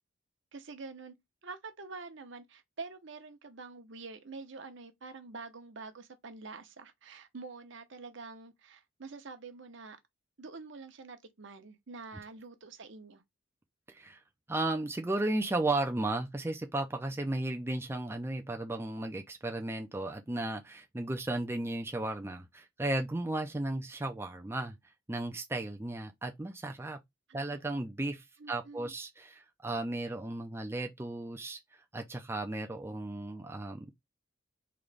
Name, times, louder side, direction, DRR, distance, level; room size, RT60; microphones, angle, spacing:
voice 1, 0.5-1.1 1.4-10.0 10.4-13.2 27.3-27.6 28.4-28.9, right 4 dB, 60° right, 0.8 m, -46 dB
voice 2, 13.9-14.2 14.5-24.8 25.1-27.0 27.3-33.9, right 2 dB, 10° right, 0.4 m, -35 dB
3.8 x 2.9 x 3.3 m
head